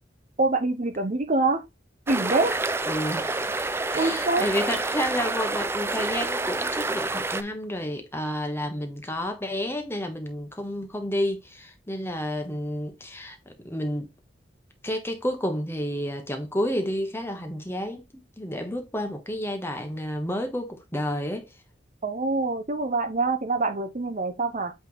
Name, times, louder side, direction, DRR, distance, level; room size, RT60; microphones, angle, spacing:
voice 1, 0.4-1.6 2.1-2.6 3.9-4.5 22.0-24.7, right 3 dB, 40° right, 0.8 m, -25 dB
sound 1, 2.1-7.4, right 2 dB, 15° right, 0.4 m, -28 dB
voice 2, 2.9-14.1 14.8-21.5, equal, 10° left, 1.3 m, -30 dB
8.6 x 3.5 x 3.9 m
head